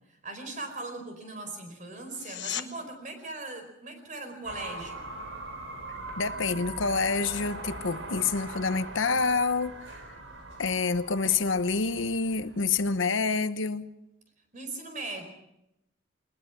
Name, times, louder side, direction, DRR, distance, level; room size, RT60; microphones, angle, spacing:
voice 1, 0.1-5.1 14.5-15.2, right 2 dB, 40° right, 6 dB, 4.6 m, -39 dB
sound 1, 2.1-2.7 14.0-14.1, left 10 dB, 65° left, 1.3 m, -35 dB
sound 2, 4.4-13.1, right 2 dB, 85° right, 4.2 m, -41 dB
voice 2, 6.2-9.8 10.6-13.9, left 4 dB, 80° left, 12 dB, 1.0 m, -27 dB
21.5 x 20.5 x 6.0 m, 0.85 s
head